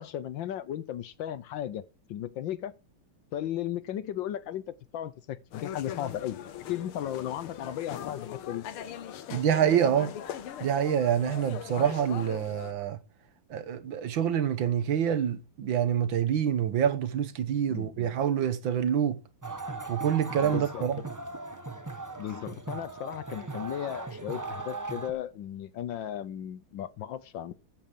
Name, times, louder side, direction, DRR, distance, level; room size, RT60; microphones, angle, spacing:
voice 1, 0.0-1.8 2.1-2.7 3.3-6.4 6.7-8.6 17.7-18.1 20.4-21.1 22.2-27.5, left 11 dB, 70° left, 1.3 m, -35 dB
sound 1, 5.5-12.7, left 9 dB, 90° left, 2.0 m, -40 dB
voice 2, 9.3-10.1 10.6-13.0 13.5-19.2 19.9-21.0, right 9 dB, 65° right, 1.7 m, -26 dB
sound 2, 19.4-25.1, right 3 dB, 15° right, 0.7 m, -38 dB
9.2 x 8.1 x 7.5 m
omnidirectional pair, 2.4 m